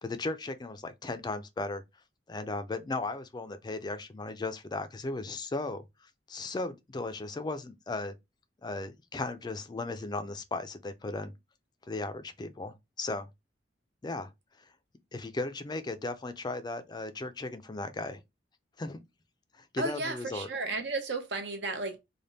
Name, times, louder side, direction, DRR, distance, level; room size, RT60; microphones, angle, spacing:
voice 1, 0.0-1.8 2.3-5.8 6.3-8.2 8.6-11.3 11.9-13.3 14.0-14.3 15.1-18.2 18.8-19.0 19.6-20.5, left 2 dB, 25° left, 0.4 m, -36 dB
voice 2, 19.8-22.0, right 3 dB, 75° right, 0.9 m, -33 dB
3.4 x 2.1 x 3.9 m
head